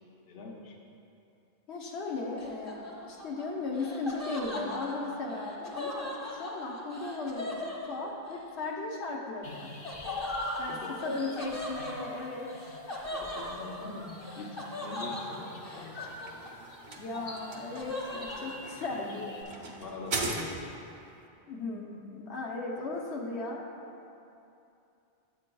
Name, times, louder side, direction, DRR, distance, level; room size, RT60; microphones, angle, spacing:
voice 1, 0.3-0.7 10.7-11.0 12.9-16.1 19.8-20.5, left 3 dB, 60° left, -1 dB, 0.9 m, -43 dB
voice 2, 1.7-9.8 10.6-12.5 17.0-19.9 21.5-23.7, left 3 dB, 90° left, -1 dB, 1.1 m, -37 dB
Laughter, 2.4-8.4 9.8-16.8 17.1-18.5, left 1 dB, 15° left, 1.0 m, -40 dB
sound 1, 9.4-19.4, left 1 dB, 30° left, 0.6 m, -42 dB
sound 2, 15.9-21.0, right 3 dB, 65° right, 0.9 m, -39 dB
9.5 x 7.6 x 2.3 m, 2.7 s
omnidirectional pair, 1.1 m